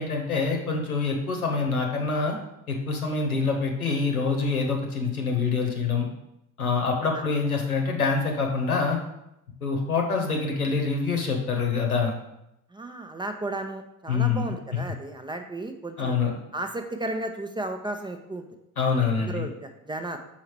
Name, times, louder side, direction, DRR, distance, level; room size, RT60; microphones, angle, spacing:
voice 1, 0.0-2.4 2.7-6.1 6.6-9.0 9.6-12.1 14.1-14.5 16.0-16.3 18.8-19.4, left 4 dB, 85° left, 2 dB, 1.0 m, -25 dB
voice 2, 12.7-16.1 16.5-18.4 19.2-20.2, right 2 dB, 10° right, 6 dB, 0.5 m, -34 dB
5.6 x 4.3 x 4.6 m, 0.84 s
figure-of-eight pair, 55°, 42 cm